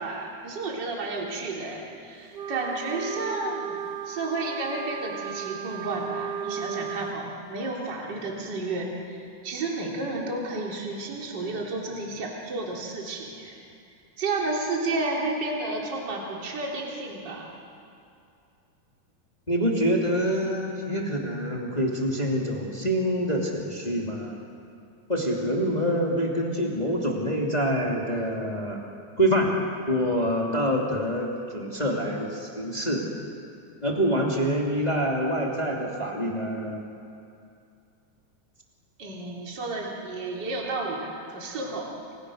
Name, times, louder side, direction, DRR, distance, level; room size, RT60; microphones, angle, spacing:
voice 1, 0.0-3.8 4.1-13.6 14.2-17.5 39.0-41.9, right 2 dB, 30° right, -2 dB, 3.9 m, -32 dB
Wind instrument woodwind instrument, 2.3-7.2, right 8 dB, 85° right, 0.9 m, -35 dB
voice 2, 19.5-24.4 25.1-28.8 29.2-29.6 29.9-33.1 33.8-36.8, equal, 15° left, -1 dB, 2.5 m, -26 dB
30.0 x 26.5 x 6.5 m, 2.5 s
omnidirectional pair, 3.7 m